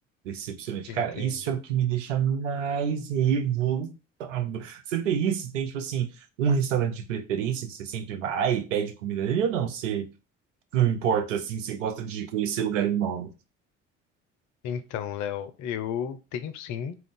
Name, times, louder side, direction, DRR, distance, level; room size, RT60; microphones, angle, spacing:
voice 1, 0.2-3.9 4.2-6.1 6.4-10.1 10.7-13.3, right 8 dB, 80° right, 0.5 m, -27 dB
voice 2, 0.9-1.4 14.6-17.0, left 9 dB, 50° left, 0.5 m, -33 dB
2.4 x 2.3 x 3.6 m
figure-of-eight pair, 55°, 37 cm